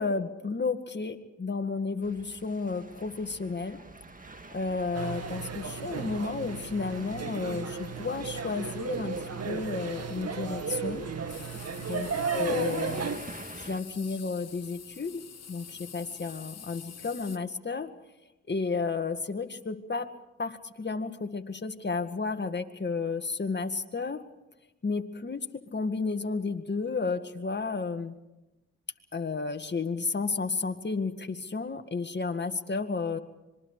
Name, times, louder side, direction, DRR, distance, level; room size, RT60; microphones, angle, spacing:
voice 1, 0.0-3.8 4.5-11.1 11.9-13.1 13.6-15.2 15.5-17.9 18.5-20.1 20.4-24.2 24.8-25.4 25.7-28.1 29.1-33.2, left 4 dB, 35° left, 7 dB, 2.0 m, -32 dB
sound 1, 2.0-13.8, right 2 dB, 30° right, 2.0 m, -48 dB
sound 2, 4.9-13.2, right 5 dB, 55° right, 2.1 m, -34 dB
sound 3, 11.3-17.4, left 8 dB, 60° left, 1.2 m, -47 dB
26.0 x 22.0 x 5.0 m, 0.99 s
cardioid pair, 55°, 30 cm